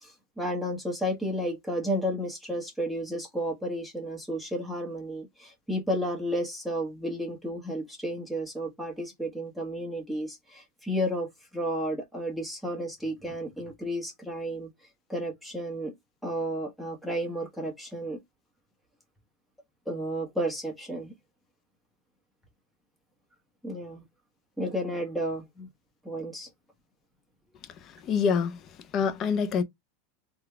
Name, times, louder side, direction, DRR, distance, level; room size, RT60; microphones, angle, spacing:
voice 1, 0.0-14.7 15.1-15.9 16.2-18.2 19.9-21.1 23.6-24.0 24.6-25.7 26.0-26.5, equal, ahead, 1.1 m, -32 dB
voice 2, 28.1-28.5 28.9-29.6, left 6 dB, 35° left, 0.5 m, -25 dB
3.8 x 2.3 x 3.3 m
supercardioid pair, 150°, 0 cm